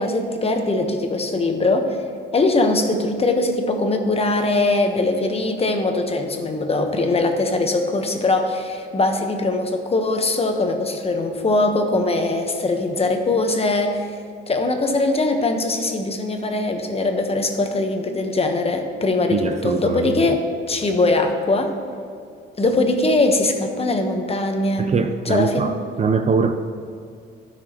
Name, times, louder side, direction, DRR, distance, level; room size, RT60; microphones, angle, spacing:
voice 1, 0.0-2.0 2.3-14.1 14.5-21.7 22.6-24.9 25.2-25.7, left 2 dB, 30° left, 4 dB, 1.1 m, -21 dB
voice 2, 19.3-20.2 24.8-26.5, right 5 dB, 35° right, 7 dB, 0.5 m, -22 dB
15.0 x 6.1 x 3.0 m, 2.3 s
cardioid pair, 90°, 20 cm